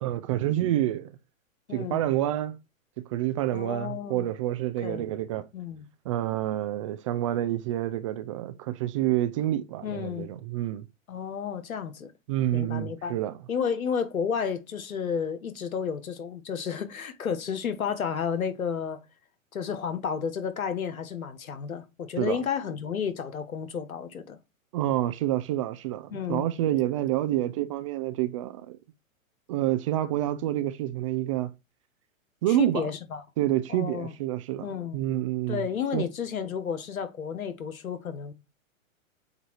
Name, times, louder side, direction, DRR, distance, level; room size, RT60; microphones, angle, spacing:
voice 1, 0.0-1.2 1.7-2.6 3.1-5.5 6.1-10.9 12.3-13.4 22.2-22.4 24.7-28.8 29.5-31.5 32.4-32.9 33.4-35.7 35.9-36.1, right 13 dB, 25° right, 0.3 m, -28 dB
voice 2, 1.7-2.0 3.5-4.3 4.8-5.1 5.5-5.8 9.8-10.3 11.1-12.1 12.5-13.2 13.5-19.0 19.5-24.4 26.1-26.5 32.6-33.2 33.7-34.1 34.6-35.0 35.5-38.3, left 7 dB, 90° left, 1.3 m, -32 dB
8.0 x 2.7 x 4.5 m
hypercardioid pair, 125°, 41 cm